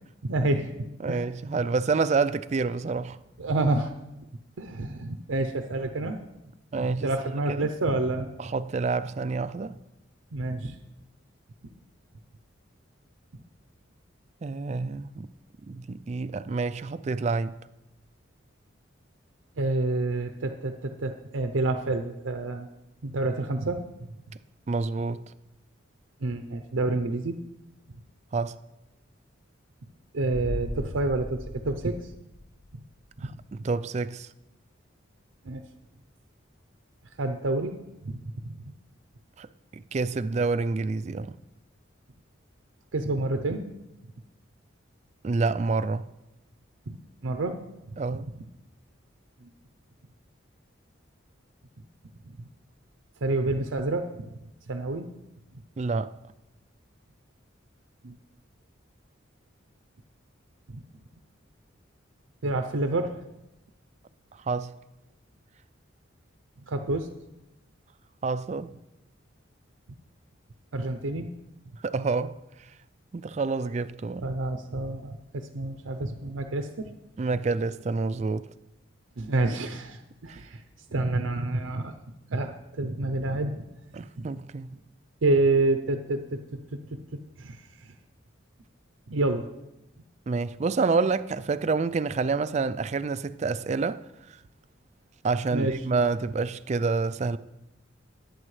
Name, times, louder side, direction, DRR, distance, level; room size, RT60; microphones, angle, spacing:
voice 1, 0.2-1.3 3.4-3.9 4.6-6.2 6.7-8.3 10.3-10.8 19.6-22.7 23.0-23.8 26.2-27.4 30.1-32.0 33.2-33.3 35.4-35.6 37.2-37.8 38.0-38.6 42.9-43.7 46.9-47.0 47.2-47.6 47.9-48.0 49.4-49.5 52.3-52.5 53.2-54.1 54.7-55.1 58.0-58.2 60.7-60.8 62.4-63.1 66.7-67.1 70.7-71.3 74.2-76.9 79.2-80.6 80.9-81.9 82.3-83.6 84.2-84.3 85.2-86.4 86.9-87.0 87.4-87.9 89.1-89.5 95.5-95.8, right 2 dB, 85° right, 0.6 m, -28 dB
voice 2, 1.0-3.2 6.7-7.1 7.5-7.7 8.4-9.8 14.4-15.3 15.7-17.6 24.7-25.3 28.3-28.6 33.2-34.3 39.4-39.5 39.7-41.3 45.2-46.0 48.0-48.3 55.8-56.1 64.5-64.7 68.2-68.7 71.8-72.4 73.1-74.3 77.2-78.5 80.3-80.4 83.9-84.8 90.3-94.0 95.2-97.4, right 4 dB, 35° right, 0.3 m, -28 dB
sound 1, 30.3-33.0 33.3-33.4, left 1 dB, 40° left, 0.7 m, -37 dB
18.5 x 8.7 x 3.2 m
head